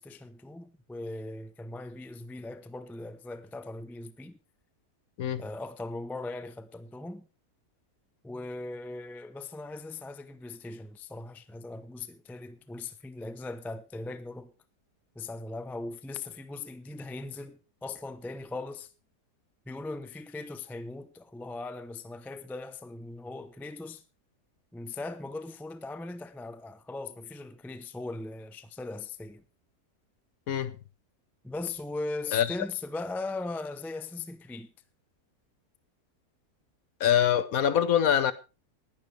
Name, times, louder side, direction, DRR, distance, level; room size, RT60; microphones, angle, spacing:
voice 1, 0.0-4.4 5.4-7.3 8.2-14.5 15.1-18.9 19.7-24.0 24.7-29.4 31.4-34.7, left 3 dB, ahead, 0.4 m, -39 dB
voice 2, 37.0-38.3, left 9 dB, 65° left, 1.2 m, -24 dB
20.0 x 10.5 x 3.4 m
omnidirectional pair, 1.7 m